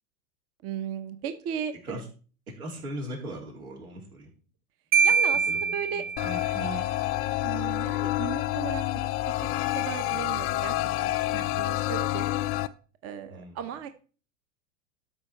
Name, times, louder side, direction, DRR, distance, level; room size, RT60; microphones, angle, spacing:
voice 1, 0.6-2.0 5.0-6.1 7.4-8.8 9.3-12.3 13.0-13.9, right 8 dB, 35° right, 9 dB, 0.8 m, -36 dB
voice 2, 2.6-4.3 5.0-5.1 5.5-6.9 13.3-13.6, right 1 dB, 85° right, -1 dB, 3.6 m, -39 dB
Marimba xylophone, 4.9-6.7, right 5 dB, 65° right, 0.9 m, -24 dB
sound 1, 6.2-12.7, left 16 dB, 30° left, 0.5 m, -28 dB
12.5 x 4.4 x 4.4 m, 0.38 s
hypercardioid pair, 95°, 42 cm